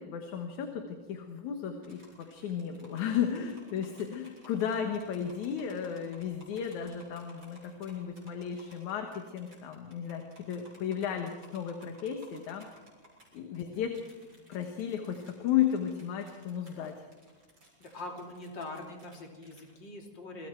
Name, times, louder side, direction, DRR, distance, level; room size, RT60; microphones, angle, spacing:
voice 1, 0.0-12.7 13.3-14.0 14.5-17.0, left 8 dB, 75° left, 5 dB, 2.8 m, -34 dB
sound 1, 1.8-19.7, equal, 25° right, 7.2 m, -58 dB
voice 2, 17.8-20.5, left 2 dB, 35° left, 1 dB, 3.7 m, -43 dB
27.5 x 23.0 x 4.6 m, 1.3 s
omnidirectional pair, 3.5 m